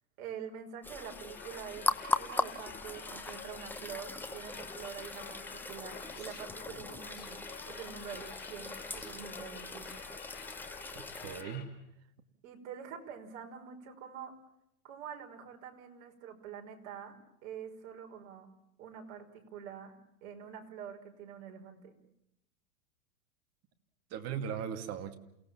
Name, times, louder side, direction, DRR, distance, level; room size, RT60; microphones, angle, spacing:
voice 1, 0.2-1.9 2.2-10.0 12.4-14.3 14.8-18.5 18.8-22.0, right 8 dB, 50° right, 3 dB, 5.7 m, -46 dB
sound 1, 0.8-11.4, left 2 dB, 5° left, 1.0 m, -39 dB
sound 2, 1.0-11.6, left 7 dB, 25° left, 4.3 m, -49 dB
voice 2, 10.9-11.7 24.1-25.1, right 8 dB, 35° right, 7 dB, 2.5 m, -38 dB
29.0 x 18.5 x 7.3 m, 0.80 s
hypercardioid pair, 135°, 42 cm